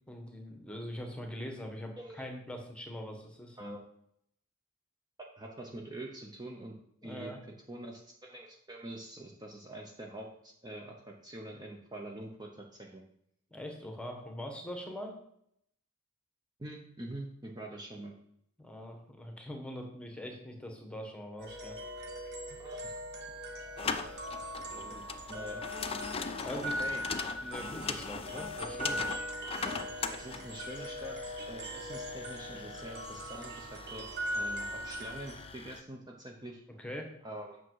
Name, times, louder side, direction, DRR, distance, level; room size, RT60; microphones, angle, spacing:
voice 1, 0.1-3.6 7.0-7.4 13.5-15.1 18.6-21.8 26.4-26.8 27.4-29.0 36.7-37.1, equal, 5° left, 3 dB, 1.3 m, -42 dB
voice 2, 2.0-2.3 3.6-3.8 5.4-6.7 7.0-7.3 7.7-13.0 16.6-18.1 22.6-23.0 24.6-25.0 25.3-25.6 26.5-27.0 30.1-34.1 34.3-36.6 37.2-37.6, right 1 dB, 20° right, 0 dB, 0.9 m, -45 dB
sound 1, 21.4-35.5, equal, 50° right, 1.6 m, -40 dB
sound 2, 23.8-35.8, left 5 dB, 25° left, 0.5 m, -41 dB
8.8 x 6.1 x 4.8 m, 0.72 s
head